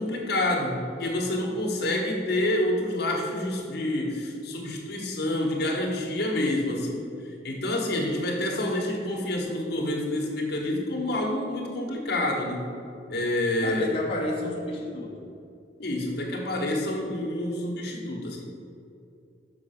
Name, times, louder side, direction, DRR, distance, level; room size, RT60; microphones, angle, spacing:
voice 1, 0.0-7.0 7.4-12.6 13.1-14.0 15.8-18.4, left 1 dB, 65° left, 0 dB, 1.3 m, -28 dB
voice 2, 13.6-15.3, left 1 dB, 30° left, -4 dB, 1.2 m, -32 dB
6.0 x 5.9 x 5.7 m, 2.6 s
head